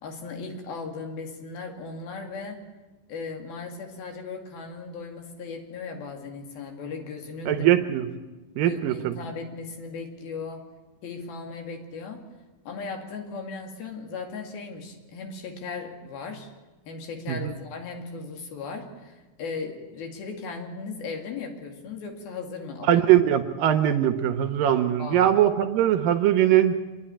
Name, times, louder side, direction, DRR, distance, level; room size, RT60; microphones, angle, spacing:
voice 1, 0.0-2.7 3.1-7.7 8.6-10.6 11.0-12.2 12.7-16.5 16.9-23.0 25.0-25.3, left 4 dB, 70° left, 3 dB, 4.0 m, -37 dB
voice 2, 7.5-8.1 8.6-9.2 17.3-17.5 22.9-26.8, right 11 dB, 75° right, 8 dB, 2.3 m, -21 dB
26.0 x 11.0 x 10.0 m, 1.2 s
omnidirectional pair, 4.5 m